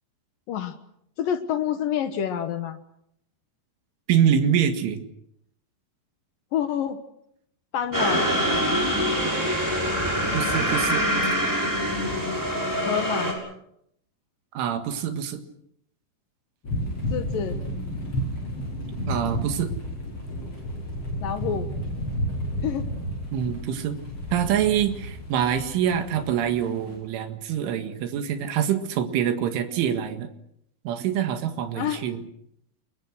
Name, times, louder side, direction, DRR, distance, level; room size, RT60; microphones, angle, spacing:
voice 1, 1.2-2.8 6.5-7.0 7.7-8.3 12.9-13.4 17.1-17.6 21.2-21.7 22.6-22.8 31.7-32.1, left 9 dB, 65° left, 9 dB, 2.3 m, -27 dB
voice 2, 4.1-5.0 10.3-11.3 14.5-15.4 19.1-19.7 23.3-24.0 24.3-30.3 30.9-32.2, right 9 dB, 90° right, 6 dB, 4.4 m, -25 dB
sound 1, 7.9-13.3, equal, 5° right, 6.2 m, -24 dB
sound 2, 16.6-27.0, equal, 30° left, 8.5 m, -32 dB
29.5 x 22.5 x 6.4 m, 0.75 s
omnidirectional pair, 5.4 m